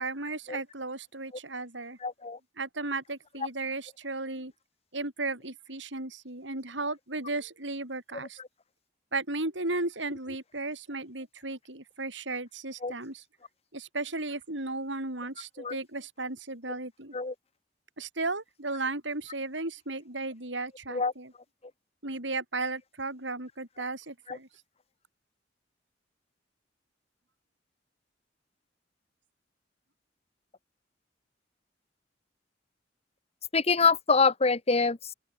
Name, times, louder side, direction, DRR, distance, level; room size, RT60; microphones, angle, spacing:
voice 1, 0.0-2.0 2.6-4.5 4.9-8.4 9.1-13.2 13.7-17.2 18.0-21.3 22.0-24.5, right 2 dB, 85° right, 6.7 m, -35 dB
voice 2, 2.0-2.4 12.8-12.9 15.6-15.8 17.1-17.3 20.9-21.1 24.3-24.4 33.5-35.0, left 4 dB, 35° left, 1.1 m, -25 dB
open air
head